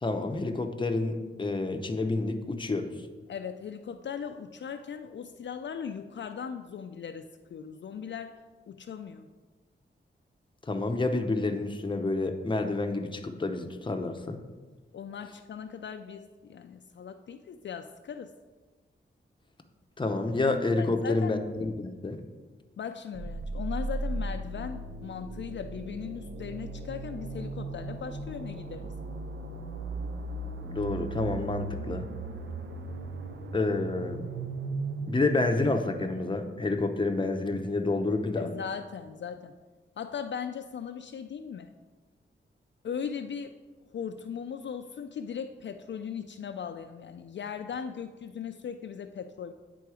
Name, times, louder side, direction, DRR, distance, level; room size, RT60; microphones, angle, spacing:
voice 1, 0.0-2.9 10.7-14.4 20.0-22.2 30.6-32.1 33.5-34.3 35.1-38.5, left 2 dB, 25° left, 5 dB, 0.7 m, -29 dB
voice 2, 3.3-8.4 8.7-9.3 14.9-18.3 20.8-21.3 22.8-28.9 38.3-39.5 40.0-41.7 42.8-43.5 43.9-49.5, left 7 dB, 60° left, 6 dB, 0.4 m, -38 dB
sound 1, 23.1-36.9, right 2 dB, 70° right, 0.7 m, -37 dB
9.4 x 3.8 x 4.8 m, 1.3 s
wide cardioid pair, 95°, 21 cm